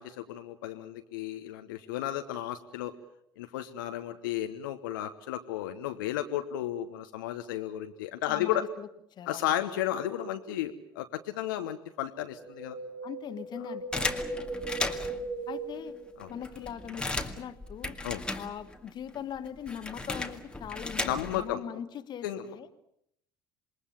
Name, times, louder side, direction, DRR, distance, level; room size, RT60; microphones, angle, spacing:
voice 1, 0.0-2.9 3.4-8.6 9.3-12.8 14.4-14.5 16.2-16.3 18.0-18.2 21.0-21.6 22.2-22.4, left 12 dB, 65° left, 7 dB, 1.2 m, -33 dB
voice 2, 8.3-8.9 9.2-9.6 13.0-13.9 15.5-16.0 16.3-18.0 18.3-22.7, left 9 dB, 40° left, 11 dB, 1.5 m, -41 dB
Wind, 12.4-16.7 16.9-17.0, right 2 dB, 50° right, 5.1 m, -38 dB
sound 1, 13.9-15.3 15.9-16.0 16.2-18.9 19.1-21.5, left 2 dB, 10° left, 1.9 m, -35 dB
27.0 x 21.5 x 7.2 m, 0.75 s
figure-of-eight pair, 65°, 12 cm